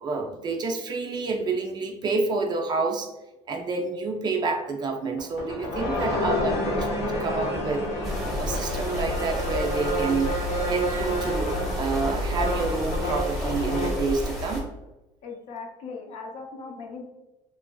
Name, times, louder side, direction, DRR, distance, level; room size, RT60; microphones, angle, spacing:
voice 1, 0.0-3.1 3.5-7.8 8.4-10.3 10.7-14.7, right 4 dB, 35° right, 3 dB, 0.3 m, -28 dB
sound 1, 5.2-14.0, left 1 dB, 85° left, 0.8 m, -29 dB
sound 2, 8.0-14.6, left 1 dB, ahead, 0.7 m, -30 dB
voice 2, 15.2-17.1, left 4 dB, 60° left, 3 dB, 0.5 m, -39 dB
2.9 x 2.5 x 2.2 m, 1.0 s
cardioid pair, 135°, 13 cm